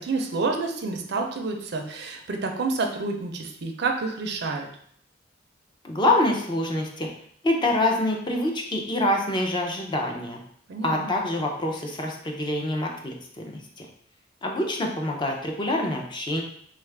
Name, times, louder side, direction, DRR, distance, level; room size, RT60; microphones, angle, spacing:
voice 1, 0.0-4.7 10.7-11.1, right 3 dB, 60° right, 3 dB, 0.5 m, -29 dB
voice 2, 5.8-7.1 7.4-10.4 10.8-13.1 13.5-13.9 14.4-16.4, left 1 dB, 25° left, 1 dB, 0.5 m, -26 dB
3.3 x 2.4 x 3.3 m, 0.63 s
head